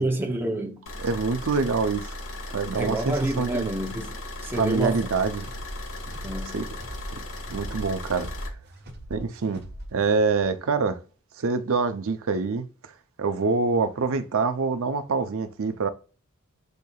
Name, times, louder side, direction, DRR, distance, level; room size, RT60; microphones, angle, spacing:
voice 1, 0.0-0.9 2.7-5.0 6.2-6.7, right 1 dB, 10° right, 0.7 m, -29 dB
sound 1, 0.9-8.5, left 1 dB, 65° left, 1.2 m, -37 dB
voice 2, 1.0-2.2 2.5-3.7 4.5-5.5 6.5-6.7 7.1-7.2 7.5-8.3 9.1-11.0 11.4-15.9, right 4 dB, 65° right, 0.6 m, -26 dB
sound 2, 5.4-10.5, equal, 50° right, 1.2 m, -41 dB
7.9 x 2.8 x 2.3 m
head